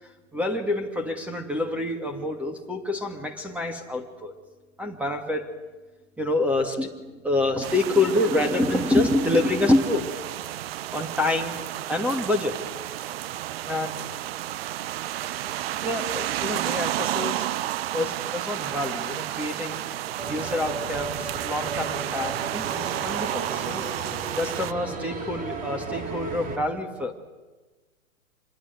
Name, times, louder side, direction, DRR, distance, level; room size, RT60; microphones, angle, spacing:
voice 1, 0.3-4.3 4.8-5.5 6.2-10.1 10.7-11.6 11.9-12.6 13.6-13.9 15.8-17.5 17.9-19.8 20.3-23.8 24.3-27.1, left 2 dB, 5° right, 5 dB, 2.3 m, -27 dB
sound 1, 7.6-24.7, right 13 dB, 45° right, 0.9 m, -31 dB
Napoli - Stazione Università direzione Piscinola, 20.2-26.6, right 3 dB, 20° right, 3.6 m, -35 dB
26.5 x 22.0 x 9.4 m, 1.2 s
hypercardioid pair, 125°, 40 cm